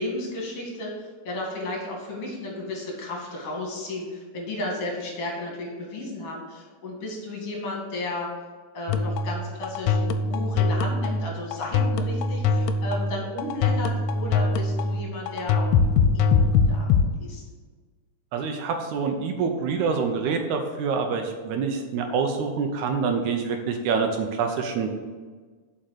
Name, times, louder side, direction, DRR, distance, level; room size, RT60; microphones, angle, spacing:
voice 1, 0.0-8.3 8.7-15.7 16.1-16.9 17.2-17.4, left 1 dB, 45° left, -1 dB, 2.6 m, -33 dB
sound 1, 8.9-17.1, left 4 dB, 85° left, 2.1 m, -23 dB
voice 2, 18.3-24.9, right 5 dB, 75° right, 5 dB, 1.9 m, -26 dB
7.5 x 5.5 x 6.4 m, 1.4 s
omnidirectional pair, 3.8 m